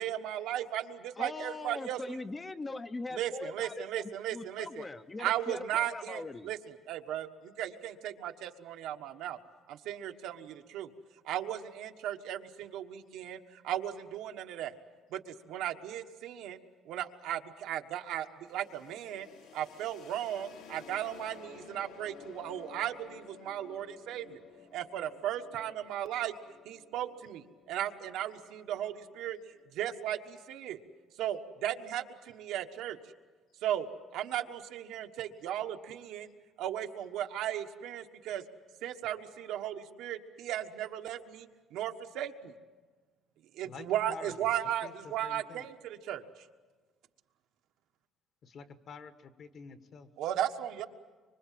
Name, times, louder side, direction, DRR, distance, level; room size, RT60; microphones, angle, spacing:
voice 1, 0.0-2.2 3.1-4.9 5.2-6.6 6.9-9.4 9.7-10.9 11.2-14.7 15.1-16.6 16.8-19.3 19.5-24.4 24.7-26.3 26.6-29.4 29.7-30.8 31.2-33.0 33.6-33.9 34.1-36.3 36.6-38.4 38.8-42.5 43.5-46.2 50.2-50.9, right 11 dB, 80° right, 5 dB, 1.4 m, -36 dB
voice 2, 1.2-6.5, left 3 dB, 20° left, 10 dB, 0.7 m, -41 dB
sound 1, 18.4-30.1, left 6 dB, 85° left, 3.1 m, -54 dB
voice 3, 43.6-45.7 48.4-50.1, left 5 dB, 45° left, 9 dB, 1.4 m, -49 dB
25.0 x 25.0 x 7.5 m, 1.4 s
cardioid pair, 160°, 0 cm